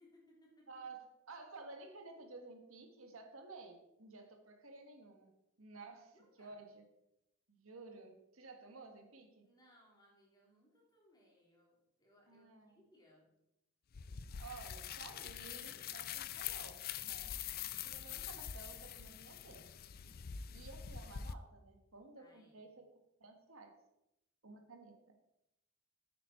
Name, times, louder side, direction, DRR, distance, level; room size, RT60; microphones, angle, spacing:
voice 1, 0.0-0.8 6.1-6.6 9.4-13.3 22.2-22.6, left 1 dB, 20° left, -3 dB, 3.3 m, -67 dB
voice 2, 0.7-5.3 5.6-6.8 7.5-9.4 12.3-12.7 14.4-17.3 17.6-19.7 20.5-22.8 23.2-23.7 24.4-25.1, right 3 dB, 75° right, 5 dB, 1.6 m, -54 dB
sound 1, 13.9-21.3, left 9 dB, 45° left, 0.4 m, -45 dB
9.3 x 9.1 x 4.4 m, 0.85 s
head